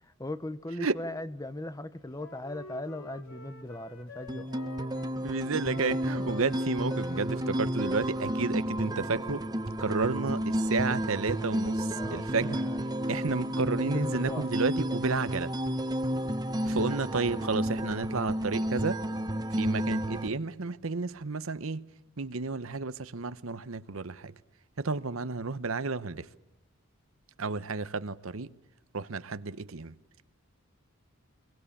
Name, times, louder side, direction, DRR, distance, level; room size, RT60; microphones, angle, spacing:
voice 1, 0.2-4.5 11.9-13.1 13.9-14.5, left 1 dB, 15° left, 0.9 m, -39 dB
Wind instrument woodwind instrument, 2.2-5.2 5.6-9.1, left 2 dB, 85° left, 2.4 m, -49 dB
sound 1, 4.3-20.3, equal, 20° right, 1.0 m, -31 dB
voice 2, 5.2-9.4 9.8-12.6 13.1-15.5 16.6-19.0 19.6-21.9 22.2-24.3 24.8-26.3 27.4-28.5 28.9-29.9, right 4 dB, 70° right, 0.9 m, -31 dB
25.0 x 22.0 x 8.6 m
head